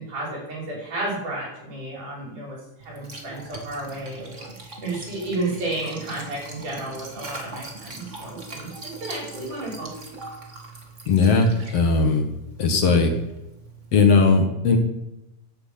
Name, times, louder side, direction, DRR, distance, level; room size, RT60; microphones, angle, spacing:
voice 1, 0.0-2.6 2.8-4.5 4.8-8.7 9.0-9.9, right 2 dB, 80° right, -4 dB, 6.8 m, -32 dB
Liquid, 2.8-14.0, right 2 dB, 25° right, 2.5 m, -41 dB
voice 2, 11.1-12.3 12.6-13.2 13.9-14.8, left 4 dB, 55° left, 5 dB, 2.4 m, -18 dB
16.0 x 10.5 x 5.8 m, 0.93 s
omnidirectional pair, 3.5 m